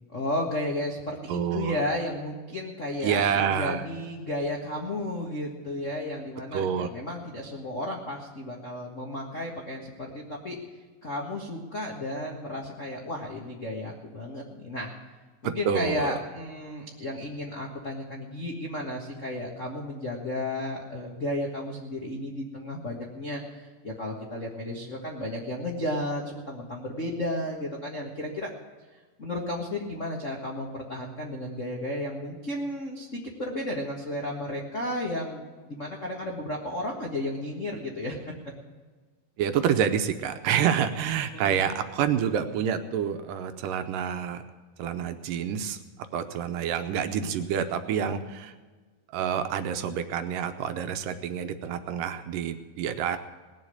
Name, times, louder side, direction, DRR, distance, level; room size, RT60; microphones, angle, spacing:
voice 1, 0.1-10.6 11.0-14.9 15.4-28.5 29.2-38.3 41.3-41.6, left 1 dB, 65° left, -1 dB, 0.7 m, -33 dB
voice 2, 1.3-1.8 3.0-3.9 6.5-6.9 15.4-16.2 39.4-44.4 44.8-45.8 46.1-48.5 49.1-53.2, right 8 dB, 75° right, 8 dB, 2.2 m, -28 dB
19.0 x 7.4 x 8.0 m, 1.4 s
omnidirectional pair, 4.2 m